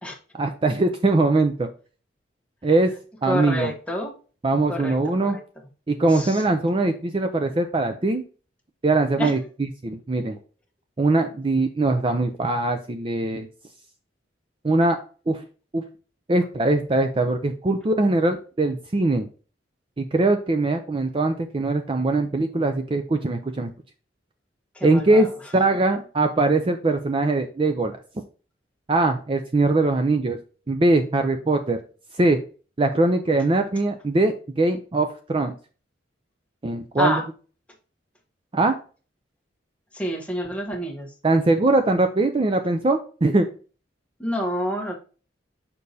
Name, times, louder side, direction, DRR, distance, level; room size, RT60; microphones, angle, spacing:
voice 1, 0.4-1.7 2.6-2.9 3.2-3.7 4.4-5.4 5.9-8.2 8.8-9.4 9.8-10.4 11.0-13.5 14.6-15.0 15.3-15.4 15.7-15.8 16.3-19.3 20.0-23.7 24.8-28.0 28.9-30.4 30.7-31.8 32.2-32.4 32.8-35.5 36.6-37.2 38.5-38.8 41.2-43.5, right 2 dB, 30° right, 7 dB, 0.4 m, -21 dB
voice 2, 3.2-4.1 4.7-5.4 6.1-6.4 9.2-9.3 24.7-25.3 37.0-37.2 39.9-41.1 44.2-44.9, equal, 5° left, 0 dB, 1.1 m, -28 dB
6.5 x 5.3 x 2.7 m, 0.37 s
head